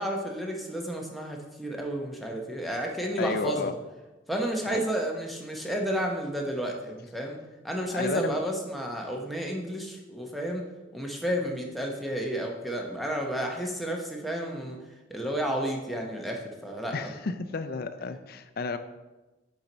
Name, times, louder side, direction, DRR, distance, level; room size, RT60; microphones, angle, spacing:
voice 1, 0.0-3.7 4.3-7.4 7.6-10.6 10.9-14.8 15.1-17.1, equal, ahead, 0 dB, 0.8 m, -31 dB
voice 2, 3.2-3.7 4.7-4.8 7.9-8.4 16.9-18.8, left 4 dB, 50° left, 9 dB, 0.4 m, -32 dB
7.1 x 4.6 x 4.0 m, 1.1 s
head